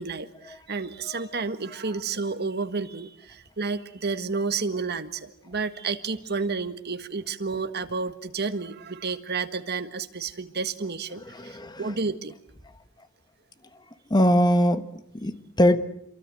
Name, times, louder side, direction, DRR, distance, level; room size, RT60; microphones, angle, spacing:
voice 1, 0.0-12.3, right 4 dB, 55° right, 9 dB, 1.6 m, -31 dB
voice 2, 1.0-1.5 11.3-12.0 14.1-15.8, equal, 20° left, 10 dB, 1.4 m, -23 dB
27.5 x 23.0 x 7.8 m, 0.73 s
head